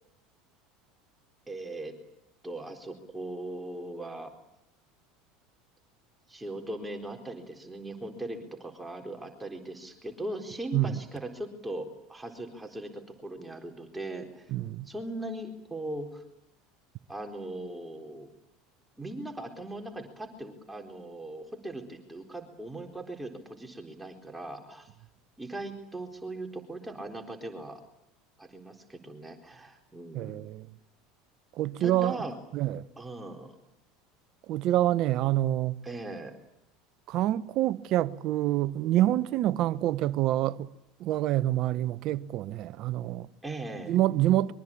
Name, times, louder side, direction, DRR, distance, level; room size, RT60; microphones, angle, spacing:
voice 1, 1.5-2.0 2.4-4.3 6.3-14.5 14.9-16.2 17.1-18.3 19.0-24.9 25.4-27.8 28.4-30.4 31.8-32.4 33.0-33.5 35.8-36.3 43.4-44.0, right 1 dB, 10° right, 4.0 m, -39 dB
voice 2, 14.5-14.9 30.1-30.7 31.6-32.2 32.5-32.8 34.5-35.8 37.1-40.7 41.0-43.3 43.9-44.5, right 14 dB, 55° right, 1.1 m, -26 dB
24.5 x 23.0 x 8.7 m
hypercardioid pair, 85°, 0 cm